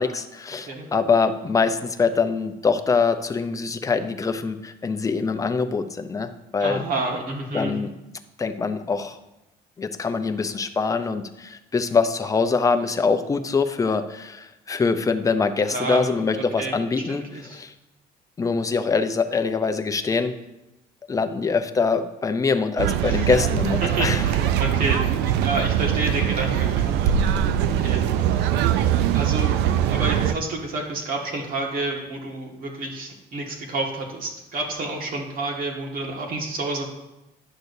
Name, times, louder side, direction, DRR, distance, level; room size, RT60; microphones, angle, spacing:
voice 1, 0.0-6.8 7.5-7.9 8.4-9.2 9.8-17.7 18.4-20.3 21.1-24.2, left 4 dB, 20° left, 7 dB, 0.5 m, -24 dB
voice 2, 6.6-7.7 15.7-16.0 16.6-17.6 23.1-23.4 23.8-27.1 27.8-28.2 29.1-29.5 29.9-36.9, right 2 dB, 60° right, 0 dB, 1.7 m, -29 dB
sound 1, 22.8-30.3, right 10 dB, 85° right, 0.4 m, -22 dB
10.5 x 6.3 x 2.7 m, 0.97 s
cardioid pair, 110°, 17 cm